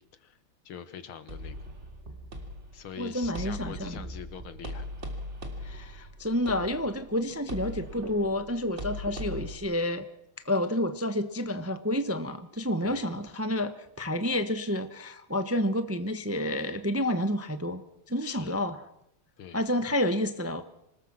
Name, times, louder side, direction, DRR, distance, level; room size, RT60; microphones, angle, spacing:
voice 1, 0.7-1.5 2.7-4.9 12.8-13.1 18.2-18.6 19.4-19.6, left 8 dB, 90° left, 12 dB, 2.4 m, -43 dB
sound 1, 1.3-9.6, equal, 35° right, 3.2 m, -40 dB
voice 2, 3.0-4.0 5.6-10.1 10.4-13.7 14.0-17.8 18.1-18.8 19.5-20.6, left 1 dB, 15° right, 10 dB, 0.6 m, -29 dB
25.5 x 20.0 x 6.0 m, 0.79 s
omnidirectional pair, 2.2 m